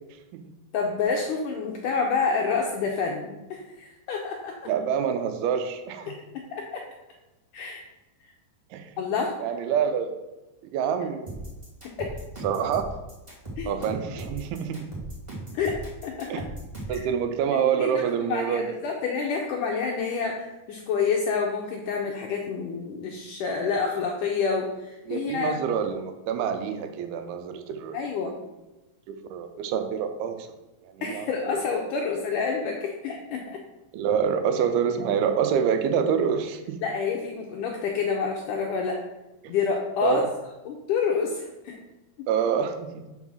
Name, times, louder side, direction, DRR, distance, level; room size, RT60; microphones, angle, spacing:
voice 1, 0.7-4.6 6.1-6.8 7.5-7.8 9.0-9.3 12.0-12.1 13.6-13.7 15.5-16.3 16.9-17.1 17.5-25.6 27.9-28.4 31.0-33.6 36.8-39.0 39.5-40.2 40.7-41.8 42.2-42.3, left 5 dB, 80° left, 0 dB, 1.9 m, -28 dB
voice 2, 4.7-6.1 8.7-8.9 9.4-10.1 10.7-11.5 12.4-12.9 13.7-14.9 16.3-16.4 16.9-18.7 25.1-28.0 29.1-30.5 30.8-31.3 31.5-31.6 33.9-36.8 40.0-40.3 42.3-43.0, right 7 dB, 85° right, 7 dB, 2.6 m, -26 dB
sound 1, 11.3-17.1, right 1 dB, 15° right, 0.9 m, -38 dB
5.6 x 5.5 x 6.2 m, 1.1 s
omnidirectional pair, 4.5 m